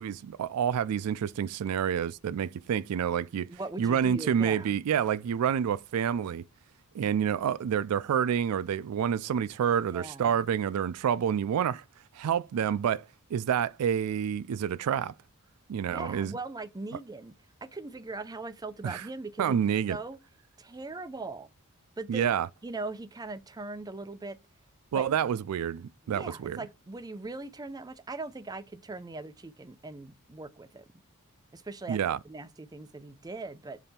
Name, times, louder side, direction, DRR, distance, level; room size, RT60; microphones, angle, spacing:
voice 1, 0.0-3.5 3.8-6.4 6.9-11.8 12.1-15.1 15.7-16.3 18.8-19.0 19.4-20.0 22.1-22.5 24.9-26.6 31.9-32.2, right 8 dB, 85° right, 0.3 m, -28 dB
voice 2, 3.5-4.8 9.9-10.3 15.9-17.3 17.6-19.6 19.9-20.2 20.6-21.5 22.0-22.3 22.6-24.4 24.9-25.0 26.0-30.8 31.5-33.8, right 3 dB, 15° right, 0.5 m, -40 dB
7.0 x 3.3 x 4.2 m
head